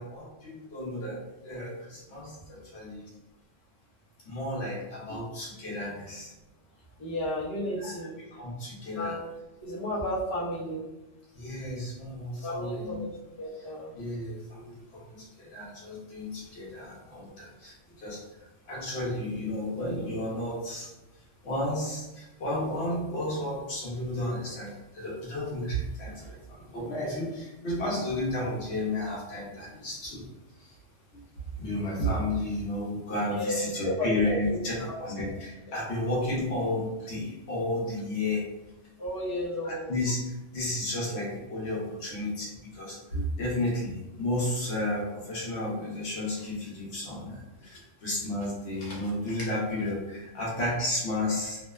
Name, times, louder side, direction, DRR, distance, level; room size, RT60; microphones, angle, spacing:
voice 1, 0.0-3.0 4.3-6.3 7.8-7.9 8.3-9.2 11.3-13.0 14.0-18.2 18.7-20.9 21.4-30.2 30.6-30.7 31.1-31.2 31.6-38.5 39.6-51.6, left 1 dB, 65° left, -4 dB, 1.0 m, -32 dB
voice 2, 7.0-8.1 8.9-9.3 9.6-10.8 12.4-13.1 13.4-13.9 33.4-34.2 34.9-35.0 39.0-39.9, left 1 dB, 30° left, -8 dB, 0.5 m, -32 dB
2.7 x 2.1 x 2.2 m, 1.0 s
omnidirectional pair, 1.3 m